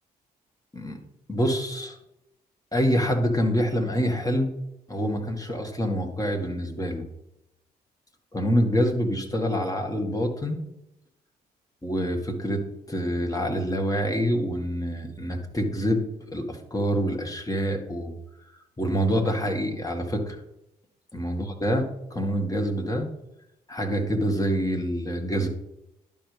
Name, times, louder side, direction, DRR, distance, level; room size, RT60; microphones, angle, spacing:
voice 1, 1.3-2.0 2.7-4.5 4.9-7.0 8.3-10.6 11.8-12.6 12.9-18.1 18.8-20.4 21.1-23.1 23.7-25.5, equal, 15° left, 2 dB, 2.0 m, -26 dB
11.5 x 5.4 x 3.4 m, 0.85 s
hypercardioid pair, 45°, 20 cm